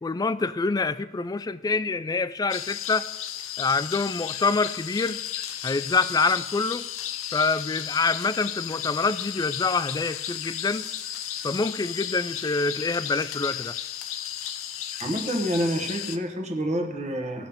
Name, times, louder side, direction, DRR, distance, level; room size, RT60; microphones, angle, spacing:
voice 1, 0.0-3.1 3.6-5.2 5.6-6.8 7.3-10.9 11.4-13.7, left 4 dB, 20° left, 14 dB, 0.3 m, -26 dB
sound 1, 2.5-16.2, left 10 dB, 80° left, 0.6 m, -34 dB
voice 2, 15.0-17.5, equal, 35° right, 3 dB, 1.3 m, -28 dB
17.5 x 7.1 x 3.6 m, 1.1 s
head